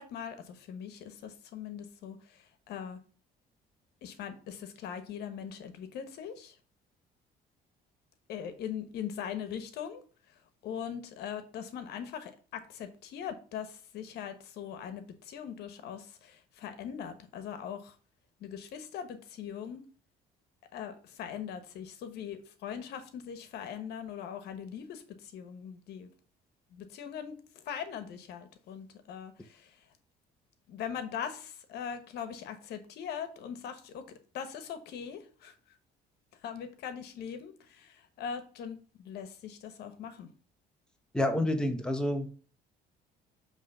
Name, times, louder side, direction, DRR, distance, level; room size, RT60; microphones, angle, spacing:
voice 1, 0.0-3.0 4.0-6.5 8.3-10.0 10.6-17.9 18.4-19.8 20.7-26.1 26.7-29.8 30.7-34.0 34.3-35.5 36.4-40.3, left 8 dB, 75° left, 9 dB, 1.1 m, -41 dB
voice 2, 41.1-42.3, left 1 dB, 5° left, 5 dB, 0.9 m, -28 dB
7.4 x 3.3 x 5.5 m, 0.40 s
cardioid pair, 110°, 17 cm